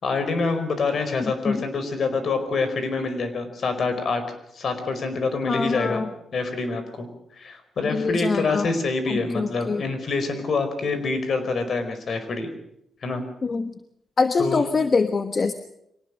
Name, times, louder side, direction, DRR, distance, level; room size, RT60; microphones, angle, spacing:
voice 1, 0.0-4.2 4.5-6.0 6.3-7.1 7.4-12.5 13.0-13.2 14.4-14.6, left 3 dB, 55° left, 9 dB, 4.8 m, -26 dB
voice 2, 1.2-1.6 5.5-6.1 7.8-8.7 9.1-9.8 13.4-13.7 14.2-15.5, left 4 dB, 40° left, 9 dB, 1.2 m, -24 dB
24.0 x 18.5 x 6.4 m, 0.79 s
cardioid pair, 100°, 0 cm